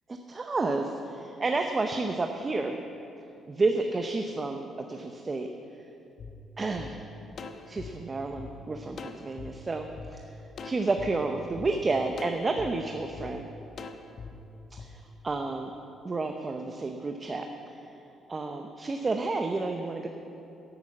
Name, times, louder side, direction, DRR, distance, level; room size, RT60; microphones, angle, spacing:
voice 1, 0.3-2.8 3.5-5.5 6.6-7.0 7.7-10.2 10.6-13.5 14.7-15.7 16.0-17.5 18.3-20.1, right 3 dB, 30° right, 4 dB, 0.8 m, -30 dB
sound 1, 6.2-6.3 6.8-6.9 7.4-8.5 9.0-9.5 10.0-10.1 10.6-11.1 11.6-11.7 12.2-12.7 13.2-13.3 13.8-14.3 14.8-14.9, left 5 dB, 55° left, 0.9 m, -41 dB
11.0 x 8.9 x 7.3 m, 2.8 s
cardioid pair, 90°, 0 cm